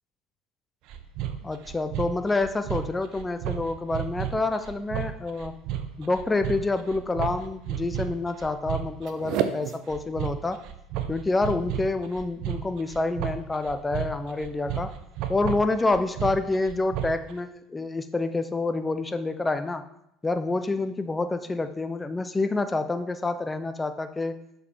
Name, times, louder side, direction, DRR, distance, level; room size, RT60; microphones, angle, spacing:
sound 1, 0.9-17.3, right 10 dB, 60° right, 0.6 m, -33 dB
voice 1, 1.4-5.6 6.0-10.6 11.1-14.9 15.3-19.8 20.2-24.4, left 3 dB, 15° left, 10 dB, 0.7 m, -27 dB
6.8 x 5.3 x 4.3 m, 0.79 s
figure-of-eight pair, 65°, 0 cm